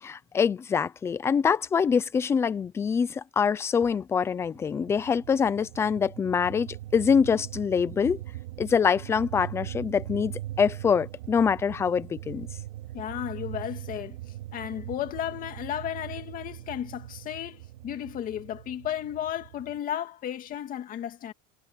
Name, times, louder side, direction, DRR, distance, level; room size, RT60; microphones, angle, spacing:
voice 1, 0.0-8.2 8.6-12.5, left 6 dB, 10° left, 0.4 m, -25 dB
sound 1, 4.4-19.8, right 14 dB, 85° right, 2.8 m, -41 dB
voice 2, 12.9-14.2 14.5-21.3, left 11 dB, 25° left, 2.1 m, -34 dB
cardioid pair, 175°, 31 cm